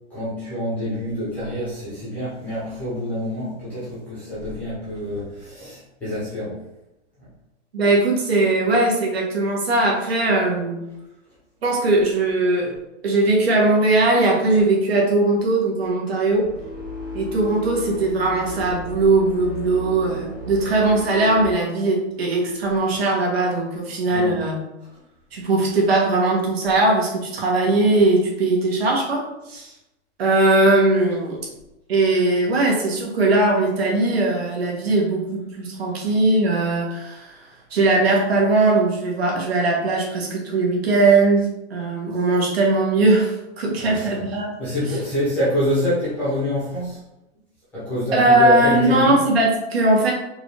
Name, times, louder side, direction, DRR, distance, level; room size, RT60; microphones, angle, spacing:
voice 1, 0.1-6.6 7.2-7.3 24.1-24.4 43.8-44.3 44.6-47.0 47.7-49.2, equal, 5° left, -11 dB, 0.8 m, -26 dB
voice 2, 7.7-10.8 11.6-12.7 13.0-16.5 17.1-24.6 25.3-29.7 30.2-31.4 31.9-44.5 48.1-50.1, right 2 dB, 60° right, -2 dB, 1.4 m, -19 dB
sound 1, 16.3-21.5, left 1 dB, 20° right, 0.3 m, -34 dB
4.6 x 2.6 x 3.3 m, 0.90 s
hypercardioid pair, 180°, 35 cm